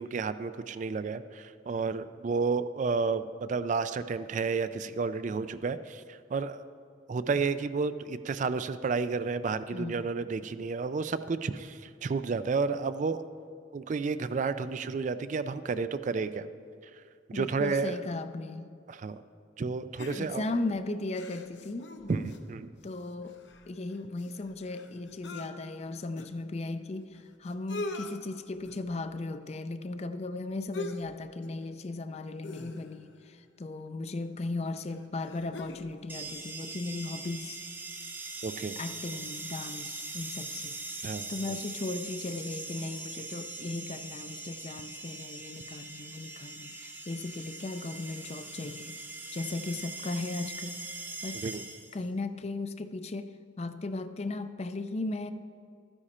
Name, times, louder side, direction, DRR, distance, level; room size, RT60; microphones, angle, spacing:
voice 1, 0.0-6.6 7.1-13.2 13.7-16.5 17.3-18.0 18.9-19.2 19.6-20.5 22.1-22.7 38.4-38.8 41.0-41.6 51.3-51.6, right 4 dB, 40° right, 12 dB, 0.3 m, -31 dB
voice 2, 9.7-10.1 17.3-18.7 20.1-21.9 22.8-23.4 23.7-37.6 38.8-40.8 41.3-49.0 49.3-50.8 51.2-51.4 51.9-55.3, left 2 dB, 35° left, 11 dB, 0.4 m, -36 dB
sound 1, 20.0-20.6 21.1-22.6 22.9-23.0 23.2-25.5 26.2-26.3 27.2-27.3 27.5-28.1 28.6-28.9 30.7-31.1 31.4-31.6 32.4-33.1 34.2-34.3 34.9-35.9 36.2-36.3, left 2 dB, 65° left, 0.8 m, -41 dB
sound 2, 36.1-52.1, right 3 dB, 10° right, 0.7 m, -41 dB
13.0 x 9.8 x 4.3 m, 2.4 s
head